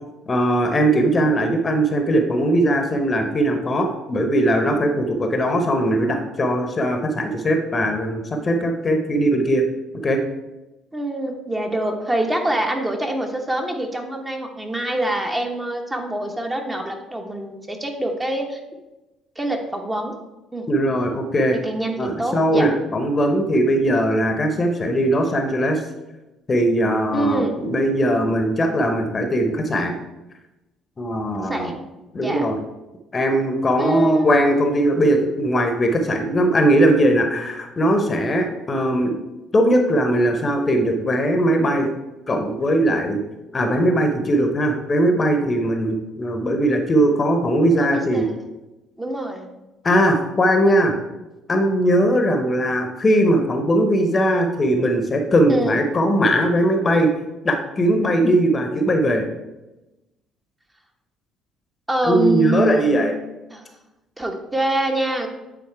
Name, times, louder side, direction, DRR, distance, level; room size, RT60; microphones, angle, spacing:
voice 1, 0.3-9.6 10.0-10.2 20.7-21.6 22.0-25.8 26.5-29.9 31.0-31.7 32.1-32.6 33.1-39.1 39.5-41.9 42.3-43.2 43.5-48.3 49.8-50.9 51.5-57.1 57.4-59.3 62.0-63.1, right 1 dB, 30° left, 5 dB, 1.0 m, -19 dB
voice 2, 10.9-18.6 19.4-20.1 20.5-20.7 21.6-22.7 27.1-27.6 31.4-31.8 32.2-32.5 33.8-34.4 47.8-48.3 49.0-49.5 55.5-55.8 61.9-63.0 63.5-63.6 64.2-65.3, right 1 dB, 15° right, 2 dB, 1.2 m, -25 dB
8.5 x 4.0 x 4.6 m, 1.0 s
figure-of-eight pair, 50°, 0 cm